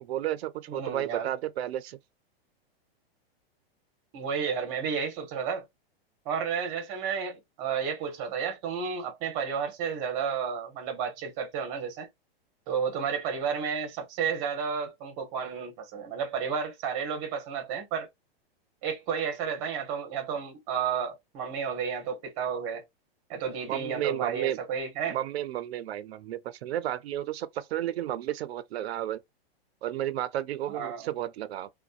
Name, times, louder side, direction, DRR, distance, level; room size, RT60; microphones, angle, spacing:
voice 1, 0.0-2.0 23.7-24.6 25.1-29.2 29.8-31.7, right 12 dB, 85° right, 0.5 m, -32 dB
voice 2, 0.7-1.3 4.1-5.6 6.3-12.1 12.7-18.1 18.8-22.8 23.3-25.2 30.7-31.1, right 6 dB, 20° right, 0.6 m, -32 dB
2.6 x 2.1 x 2.3 m
supercardioid pair, 170°, 30 cm